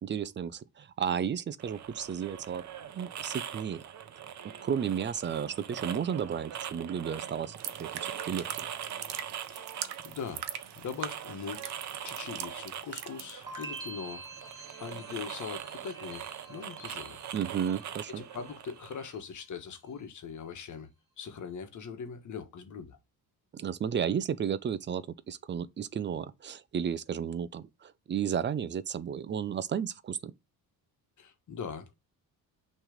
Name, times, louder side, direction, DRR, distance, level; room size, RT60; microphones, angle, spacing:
voice 1, 0.0-2.6 3.0-3.9 4.6-8.7 17.3-18.2 23.5-30.3, right 8 dB, 30° right, 0.4 m, -33 dB
sound 1, 1.6-19.1, right 9 dB, 45° right, 0.8 m, -42 dB
sound 2, 7.6-13.9 14.2-14.5, right 11 dB, 85° right, 0.9 m, -42 dB
voice 2, 10.0-10.5 10.7-14.2 14.8-17.2 18.1-20.9 21.2-23.0 31.2-31.9, left 6 dB, 50° left, 1.4 m, -41 dB
sound 3, 13.5-18.5 18.8-19.4, right 3 dB, 10° right, 2.1 m, -47 dB
6.3 x 3.3 x 5.0 m
cardioid pair, 140°, 38 cm